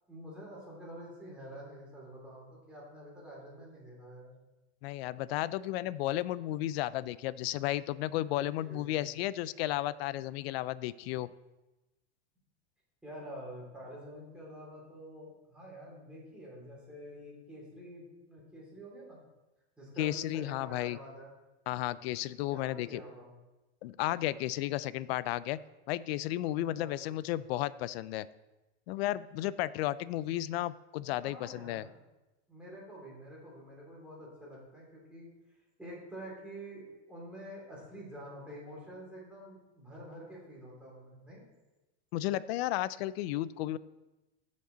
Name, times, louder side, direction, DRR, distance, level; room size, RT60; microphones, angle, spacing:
voice 1, 0.1-4.3 8.3-9.1 13.0-19.2 19.8-21.3 22.5-23.3 26.7-27.1 31.2-31.9 32.5-35.3 35.8-36.8 37.1-41.4, equal, 5° right, -6 dB, 3.2 m, -48 dB
voice 2, 4.8-11.3 20.0-21.0 21.7-23.0 23.8-25.6 25.9-28.3 28.9-31.8 42.1-43.8, left 15 dB, 65° left, 18 dB, 0.5 m, -33 dB
15.0 x 5.3 x 3.9 m, 1.1 s
supercardioid pair, 160°, 34 cm